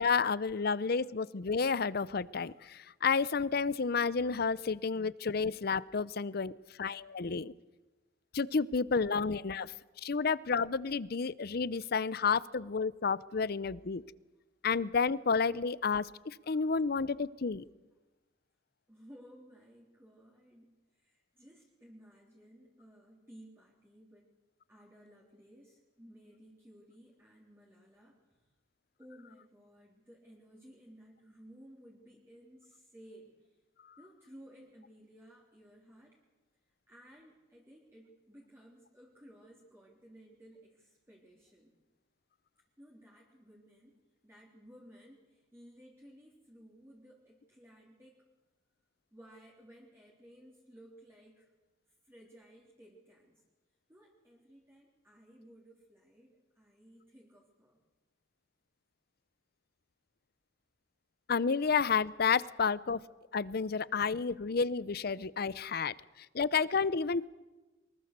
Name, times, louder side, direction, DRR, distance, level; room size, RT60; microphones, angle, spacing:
voice 1, 0.0-6.5 6.8-7.5 8.3-9.7 10.0-14.0 14.6-17.6 61.3-63.0 63.3-65.9 66.3-67.3, left 5 dB, 55° left, 19 dB, 0.6 m, -31 dB
voice 2, 18.9-24.3 24.7-28.5 29.0-33.6 34.0-36.2 36.9-41.8 42.8-48.3 49.1-51.5 52.0-53.4 53.9-57.8, equal, 15° right, -4 dB, 3.5 m, -57 dB
23.5 x 20.5 x 6.7 m, 1.2 s
head